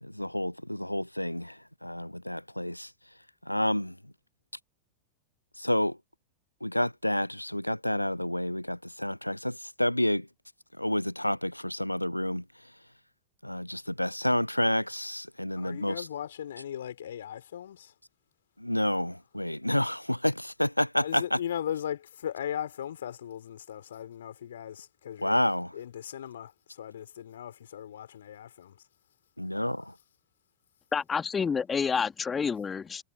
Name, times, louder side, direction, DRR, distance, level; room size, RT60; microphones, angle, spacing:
voice 1, 0.0-2.9 3.4-4.1 5.6-6.0 6.6-10.3 10.8-12.7 13.4-16.1 18.6-21.4 25.2-25.8 29.4-29.9, left 1 dB, 90° left, 1.0 m, -29 dB
voice 2, 15.6-17.9 21.0-25.4 25.7-28.7, left 10 dB, 65° left, 4.5 m, -38 dB
voice 3, 30.9-33.0, left 6 dB, 20° left, 2.3 m, -29 dB
figure-of-eight pair, 90°, 0 cm